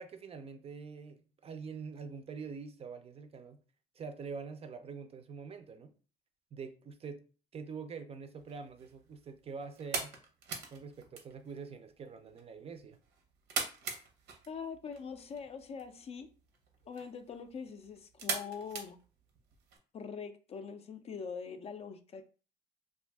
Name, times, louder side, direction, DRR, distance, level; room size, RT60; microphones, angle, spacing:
voice 1, 0.0-3.6 4.0-5.9 6.5-7.2 7.5-10.1 10.7-13.0, right 5 dB, 35° right, 0.4 m, -45 dB
sound 1, 8.4-19.8, right 5 dB, 85° right, 0.7 m, -43 dB
voice 2, 14.5-16.3 16.8-19.0 19.9-22.3, left 6 dB, 40° left, 0.4 m, -43 dB
2.5 x 2.4 x 3.4 m
cardioid pair, 110°, 17 cm